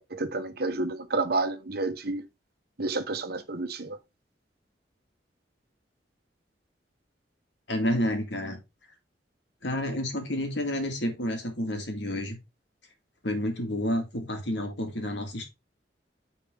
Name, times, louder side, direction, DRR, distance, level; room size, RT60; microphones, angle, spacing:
voice 1, 0.0-2.2 2.8-4.0, right 3 dB, 60° right, 1.1 m, -30 dB
voice 2, 7.7-8.6 9.6-12.4 13.2-15.4, left 1 dB, 75° left, 2.2 m, -30 dB
9.1 x 4.2 x 3.4 m
head